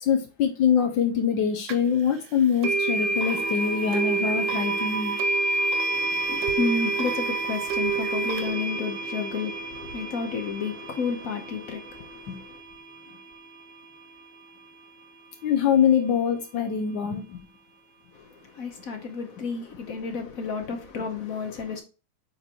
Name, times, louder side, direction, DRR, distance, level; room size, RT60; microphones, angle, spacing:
voice 1, 0.0-5.2 12.3-12.4 15.4-17.4, left 7 dB, 80° left, 1.4 m, -24 dB
sound 1, 1.7-1.8 2.6-13.6, right 3 dB, 70° right, 1.5 m, -28 dB
voice 2, 5.9-12.6 18.1-21.8, left 5 dB, 55° left, 1.1 m, -31 dB
8.1 x 4.5 x 2.9 m
omnidirectional pair, 2.1 m